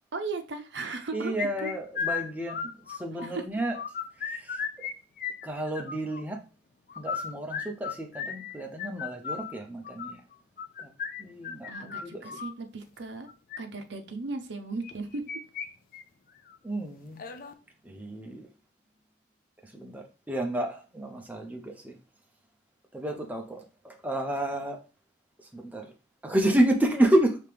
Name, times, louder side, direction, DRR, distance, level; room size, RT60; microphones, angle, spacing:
voice 1, 0.1-1.7 3.2-3.4 11.7-13.3 13.6-15.4, right 3 dB, 70° right, 0.6 m, -36 dB
voice 2, 1.1-3.8 4.2-4.6 5.4-6.4 7.0-10.2 10.8-10.9 11.2-12.4 16.6-17.2 17.8-18.5 19.6-22.0 22.9-24.8 25.5-25.9 26.2-27.4, right 1 dB, 10° right, 0.6 m, -30 dB
sound 1, 1.4-3.3 3.6-4.9 5.2-6.2 6.9-12.5 13.3-13.6 14.8-15.7 15.9-16.0 16.5-16.6 17.2-17.5, left 6 dB, 45° left, 0.4 m, -35 dB
5.0 x 2.9 x 3.4 m
head